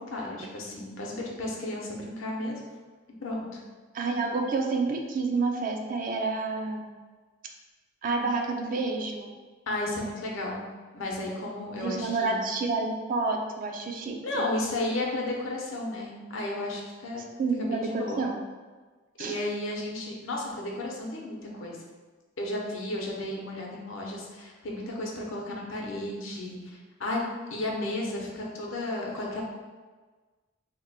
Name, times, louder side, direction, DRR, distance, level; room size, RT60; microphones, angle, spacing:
voice 1, 0.0-2.6 3.2-3.6 9.7-10.6 10.9-12.4 14.2-17.2 17.6-18.2 19.2-21.8 22.4-27.2 27.5-29.4, left 1 dB, 80° left, -2 dB, 0.7 m, -33 dB
voice 2, 3.9-6.9 8.0-9.3 11.8-14.4 17.4-18.3 19.2-19.4, right 3 dB, 45° right, 3 dB, 0.4 m, -29 dB
2.9 x 2.1 x 4.0 m, 1.4 s
head